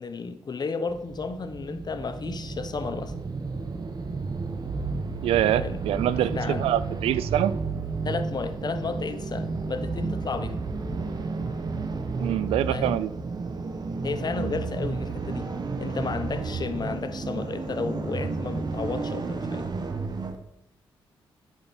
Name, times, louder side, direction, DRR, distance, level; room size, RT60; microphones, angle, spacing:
voice 1, 0.0-3.1 5.4-5.8 6.3-6.7 8.0-10.6 12.7-13.0 14.0-15.5 15.8-19.7, left 4 dB, 45° left, 0.9 m, -32 dB
sound 1, 0.9-20.3, right 4 dB, 45° right, 1.2 m, -32 dB
voice 2, 5.2-7.5 12.2-13.1 14.4-14.6, right 12 dB, 90° right, 0.4 m, -25 dB
8.5 x 6.5 x 4.4 m
cardioid pair, 60°, 10 cm